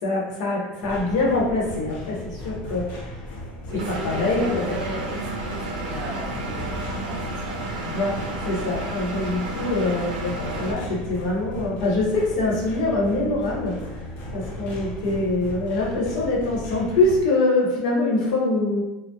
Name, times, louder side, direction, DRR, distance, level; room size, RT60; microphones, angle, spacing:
voice 1, 0.0-2.9 3.9-4.8 7.8-13.8 14.3-18.8, left 2 dB, 80° left, -4 dB, 0.8 m, -24 dB
sound 1, 0.8-17.2, left 1 dB, 45° left, 0.6 m, -36 dB
voice 2, 3.7-7.6, right 2 dB, 50° right, -2 dB, 0.8 m, -36 dB
Engine, 3.8-10.7, right 2 dB, 85° right, 0.4 m, -32 dB
2.2 x 2.0 x 2.7 m, 1.0 s
supercardioid pair, 130°, 4 cm